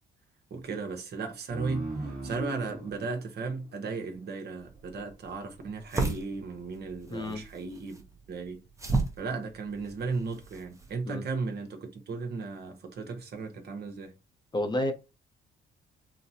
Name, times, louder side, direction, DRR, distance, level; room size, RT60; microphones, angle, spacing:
voice 1, 0.5-8.0 8.3-8.6 9.2-14.1, right 4 dB, 55° right, 0.9 m, -36 dB
sound 1, 1.5-4.7, right 2 dB, 40° right, 1.5 m, -39 dB
sound 2, 4.6-11.0, right 3 dB, 15° right, 0.7 m, -35 dB
voice 2, 7.1-7.4 11.1-11.2 14.5-14.9, left 1 dB, 20° left, 0.6 m, -30 dB
4.0 x 2.0 x 2.7 m
cardioid pair, 90°, 20 cm